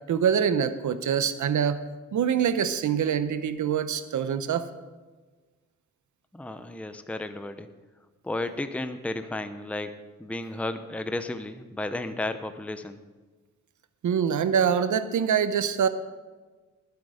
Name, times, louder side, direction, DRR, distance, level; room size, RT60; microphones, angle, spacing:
voice 1, 0.1-1.8 2.1-4.6 14.0-15.9, right 8 dB, 80° right, 12 dB, 0.9 m, -24 dB
voice 2, 6.3-7.7 8.2-13.0, left 2 dB, 5° left, 9 dB, 0.7 m, -33 dB
20.0 x 8.1 x 5.0 m, 1.3 s
wide cardioid pair, 105°, 29 cm